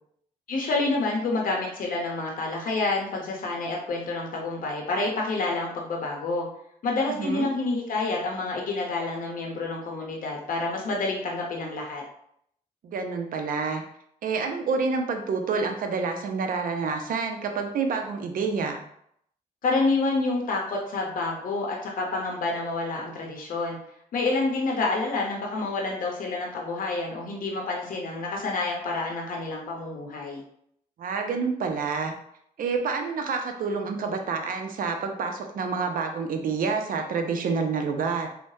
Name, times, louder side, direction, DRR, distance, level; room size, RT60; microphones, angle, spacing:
voice 1, 0.5-6.5 6.8-12.0 19.6-23.8 24.1-30.4, left 3 dB, 60° left, 0 dB, 0.7 m, -28 dB
voice 2, 12.8-13.8 14.2-18.8 31.0-32.1 32.6-38.3, right 5 dB, 65° right, 4 dB, 0.5 m, -28 dB
3.1 x 2.1 x 2.6 m, 0.70 s
supercardioid pair, 60°, 16 cm